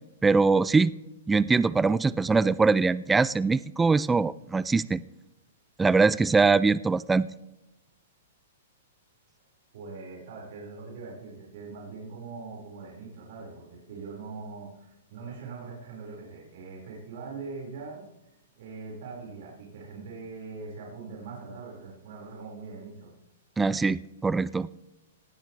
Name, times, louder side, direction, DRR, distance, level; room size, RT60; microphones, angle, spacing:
voice 1, 0.2-0.9 1.3-5.0 5.8-7.3 23.6-24.7, right 4 dB, 10° right, 19 dB, 0.4 m, -22 dB
voice 2, 9.7-18.3 18.6-23.1, right 4 dB, 60° right, -3 dB, 5.3 m, -42 dB
18.5 x 15.0 x 3.4 m, 0.95 s
hypercardioid pair, 125°, 0 cm